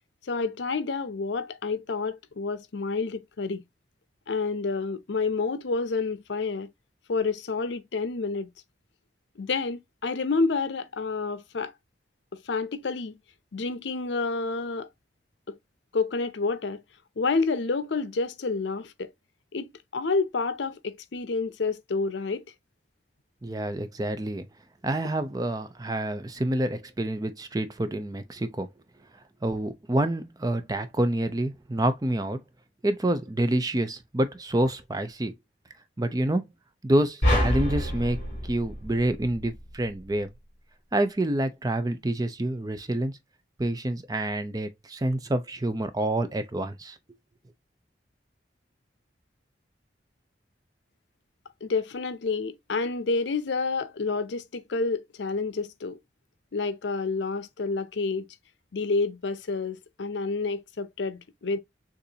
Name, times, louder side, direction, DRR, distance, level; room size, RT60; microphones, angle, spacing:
voice 1, 0.3-3.6 4.3-6.7 7.1-8.5 9.4-11.7 12.5-13.1 13.5-14.9 15.5-15.6 15.9-16.8 17.2-19.1 19.5-22.4 51.6-56.0 56.5-58.3 58.7-61.6, left 4 dB, 80° left, 0.6 m, -29 dB
voice 2, 23.4-24.4 24.8-28.7 29.4-32.4 32.8-35.3 36.0-36.4 36.8-38.2 38.4-40.3 40.9-43.1 43.6-47.0, right 1 dB, 20° right, 0.5 m, -27 dB
sound 1, 37.2-39.6, left 1 dB, 40° left, 3.7 m, -27 dB
6.7 x 2.6 x 2.7 m
head